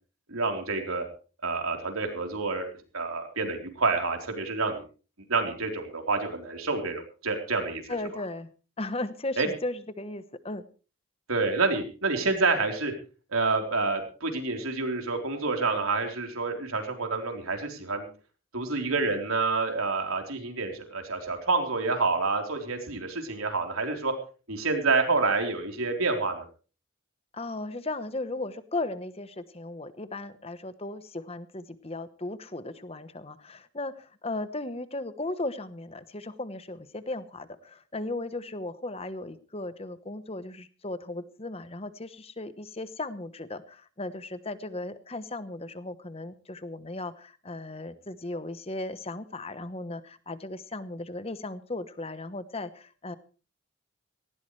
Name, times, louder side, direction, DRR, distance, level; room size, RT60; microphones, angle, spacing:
voice 1, 0.3-1.1 1.4-2.7 2.9-4.8 5.3-7.8 9.4-9.5 11.3-12.9 13.3-18.1 18.5-24.1 24.5-26.5, right 3 dB, 85° right, 3 dB, 3.9 m, -28 dB
voice 2, 7.9-8.5 8.8-10.6 27.3-53.2, left 2 dB, 30° left, 12 dB, 1.0 m, -36 dB
18.5 x 17.0 x 3.3 m, 0.36 s
head